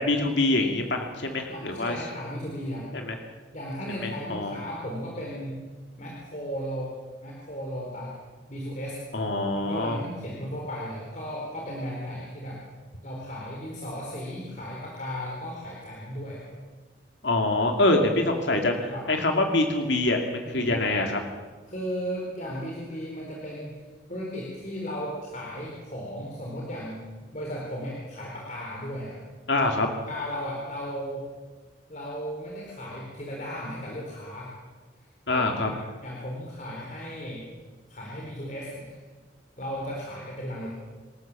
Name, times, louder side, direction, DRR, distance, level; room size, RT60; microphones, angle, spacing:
voice 1, 0.0-2.0 2.9-3.2 4.0-4.6 9.1-10.0 17.2-21.2 29.5-29.9 35.3-35.7, left 2 dB, 70° left, 3 dB, 2.5 m, -25 dB
voice 2, 1.5-2.9 3.5-5.6 6.0-6.9 7.2-8.2 8.5-9.0 9.5-12.6 13.0-16.5 18.9-19.0 20.4-20.8 21.7-23.8 24.1-27.0 27.3-29.2 30.1-31.2 31.9-34.5 35.3-37.4 37.9-39.0 39.6-40.7, equal, 40° left, -3 dB, 4.2 m, -35 dB
26.0 x 14.0 x 7.5 m, 1.3 s
head